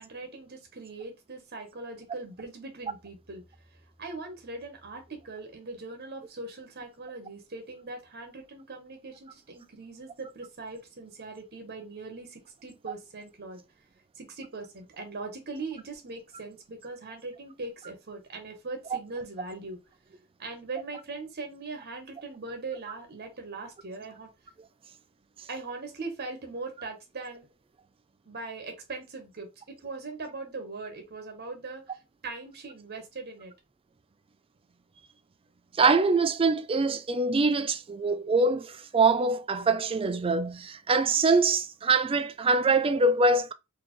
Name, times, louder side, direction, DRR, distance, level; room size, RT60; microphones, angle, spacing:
voice 1, 0.0-3.4 4.0-13.6 14.2-19.8 20.4-24.3 25.5-27.5 28.3-33.5, right 3 dB, 50° right, 1.0 m, -40 dB
voice 2, 35.8-43.5, right 3 dB, 25° right, 0.4 m, -24 dB
4.2 x 2.8 x 3.0 m
head